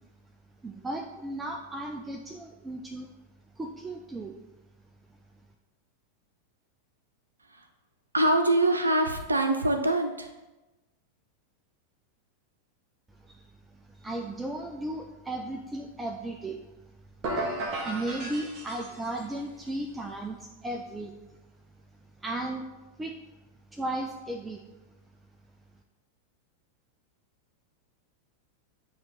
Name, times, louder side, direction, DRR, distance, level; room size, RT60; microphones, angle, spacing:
voice 1, 0.6-3.1 3.6-4.4 13.2-13.5 13.7-16.6 17.8-21.1 22.2-22.6 23.0-23.2 23.7-24.6, right 1 dB, 10° right, 3 dB, 0.4 m, -35 dB
voice 2, 8.1-10.3, right 1 dB, 80° right, 6 dB, 0.6 m, -24 dB
sound 1, 17.2-19.3, right 1 dB, 35° right, 1.1 m, -34 dB
8.6 x 3.0 x 4.1 m, 1.1 s
figure-of-eight pair, 90°, 0 cm